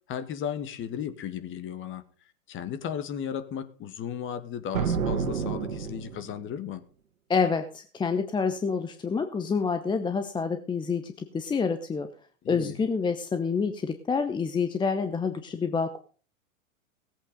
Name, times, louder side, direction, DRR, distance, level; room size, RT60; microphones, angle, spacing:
voice 1, 0.1-2.0 2.5-6.8 12.4-12.8, left 8 dB, 30° left, 11 dB, 1.7 m, -35 dB
sound 1, 4.7-6.5, right 6 dB, 80° right, 2.2 m, -29 dB
voice 2, 7.3-12.1 12.5-16.0, left 5 dB, 10° left, 8 dB, 0.8 m, -28 dB
17.0 x 8.3 x 5.2 m, 0.40 s
hypercardioid pair, 110°, 41 cm